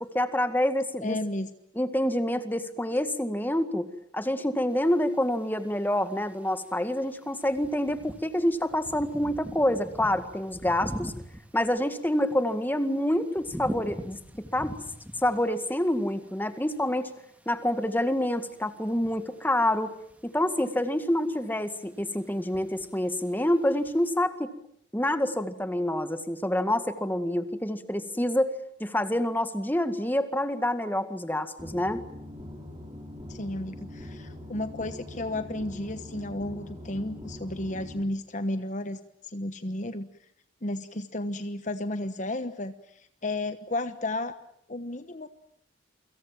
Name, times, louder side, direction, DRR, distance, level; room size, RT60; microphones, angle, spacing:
voice 1, 0.0-1.2 1.8-3.9 4.1-11.1 11.5-14.2 14.5-14.8 15.2-17.1 17.5-19.9 20.2-24.5 24.9-28.5 28.8-32.0, left 1 dB, 10° left, 9 dB, 1.9 m, -27 dB
voice 2, 1.0-1.5 33.3-40.1 40.6-42.7 43.2-44.4 44.7-45.3, left 1 dB, 40° left, 10 dB, 1.2 m, -33 dB
sound 1, 4.7-24.1, equal, 10° right, 2.4 m, -45 dB
sound 2, 31.6-38.0, left 1 dB, 25° right, 5.7 m, -42 dB
29.0 x 25.5 x 7.5 m, 0.67 s
head